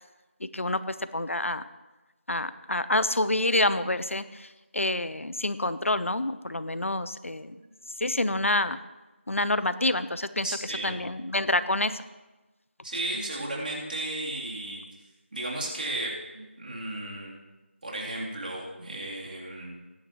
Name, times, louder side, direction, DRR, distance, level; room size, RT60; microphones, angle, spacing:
voice 1, 0.4-1.6 2.3-7.6 8.0-8.8 9.3-10.5 10.8-12.0, left 2 dB, 80° left, 14 dB, 0.8 m, -27 dB
voice 2, 10.4-11.0 12.8-14.8 15.3-17.3 17.8-19.8, right 1 dB, 45° right, -4 dB, 3.1 m, -34 dB
21.0 x 10.5 x 3.0 m, 1.1 s
figure-of-eight pair, 170°, 7 cm